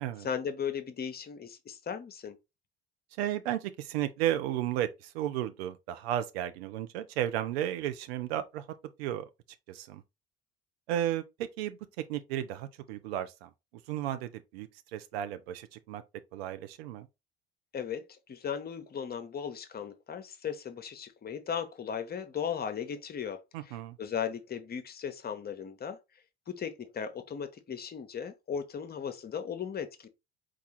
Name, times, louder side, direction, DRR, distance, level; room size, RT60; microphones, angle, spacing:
voice 1, 0.2-2.4 17.7-26.0 26.5-30.1, left 7 dB, 30° left, 0.7 m, -37 dB
voice 2, 3.2-8.6 9.0-9.3 9.7-10.0 10.9-13.5 13.9-16.0 16.3-17.1 23.5-24.0, right 11 dB, 65° right, 0.6 m, -34 dB
4.6 x 2.4 x 4.2 m
figure-of-eight pair, 55°, 33 cm